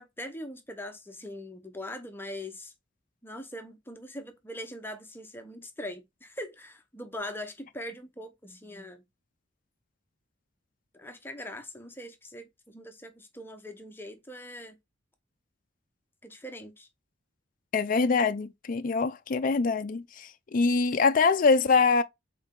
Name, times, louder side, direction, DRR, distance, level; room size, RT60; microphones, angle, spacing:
voice 1, 0.0-2.7 3.2-9.0 10.9-14.8 16.2-16.9, left 1 dB, 10° left, 0.9 m, -41 dB
voice 2, 17.7-22.0, left 4 dB, 45° left, 0.4 m, -24 dB
6.3 x 4.0 x 3.7 m
head